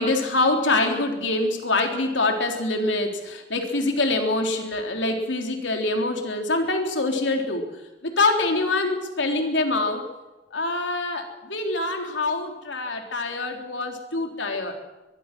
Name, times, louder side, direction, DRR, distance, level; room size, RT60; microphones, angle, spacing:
voice 1, 0.0-7.7 8.0-10.0 10.5-14.7, left 2 dB, 80° left, 3 dB, 3.7 m, -25 dB
23.0 x 23.0 x 6.1 m, 1.1 s
head